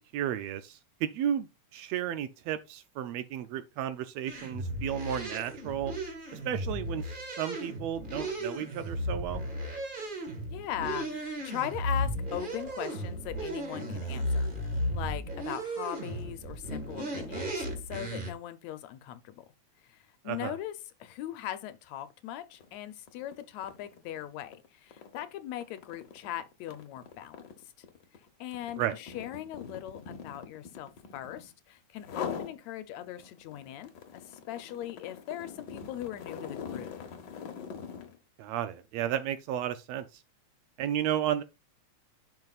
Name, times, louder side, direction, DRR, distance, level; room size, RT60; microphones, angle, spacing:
voice 1, 0.0-1.5 1.7-5.9 6.3-9.4 20.2-20.6 28.8-29.0 38.4-40.2 40.8-41.4, right 10 dB, 80° right, 1.6 m, -33 dB
sound 1, 4.3-18.3, equal, 30° right, 0.9 m, -35 dB
voice 2, 10.5-19.5 19.8-20.7 21.0-27.4 28.4-37.0, left 12 dB, 75° left, 1.9 m, -40 dB
sound 2, 22.5-22.8 23.1-31.5 32.0-32.6 33.0-38.2, left 7 dB, 60° left, 1.2 m, -43 dB
10.5 x 5.4 x 2.4 m
omnidirectional pair, 3.3 m